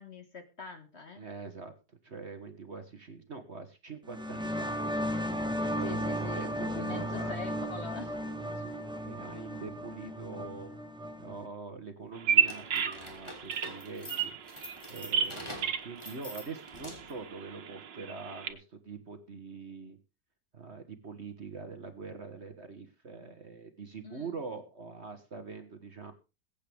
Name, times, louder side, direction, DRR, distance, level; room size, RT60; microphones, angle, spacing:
voice 1, 0.0-1.3 5.8-8.1 24.0-24.4, left 5 dB, 40° left, 6 dB, 1.8 m, -43 dB
voice 2, 1.1-1.7 2.0-4.8 5.7-7.4 8.5-10.7 11.2-14.4 14.9-20.0 20.5-26.1, right 4 dB, 40° right, 8 dB, 1.5 m, -44 dB
sound 1, 4.1-11.5, equal, 5° right, 1.1 m, -35 dB
Bird vocalization bird call bird song, 12.1-18.5, right 8 dB, 90° right, 1.9 m, -33 dB
sound 2, 12.4-17.2, left 1 dB, 15° left, 3.1 m, -46 dB
21.5 x 8.6 x 3.5 m, 0.29 s
omnidirectional pair, 1.9 m